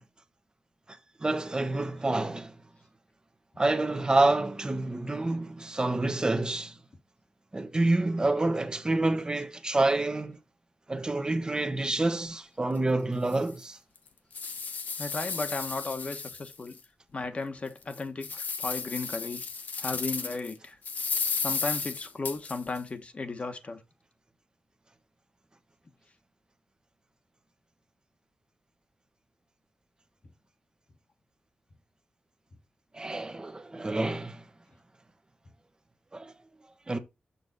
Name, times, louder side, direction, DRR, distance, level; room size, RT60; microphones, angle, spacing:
voice 1, 1.2-2.6 3.6-6.8 7.5-10.4 10.9-13.8 32.9-34.4 36.1-36.3 36.9-37.0, right 2 dB, 25° right, 1.0 m, -28 dB
sound 1, 12.7-12.8 13.3-13.4 13.9-16.8 17.2-17.3 17.8-20.5 20.8-22.8, left 5 dB, 70° left, 1.1 m, -34 dB
voice 2, 15.0-16.8 17.1-19.4 19.8-20.8 21.4-23.8, left 3 dB, 45° left, 1.3 m, -35 dB
6.9 x 6.3 x 4.0 m
cardioid pair, 70°, 3 cm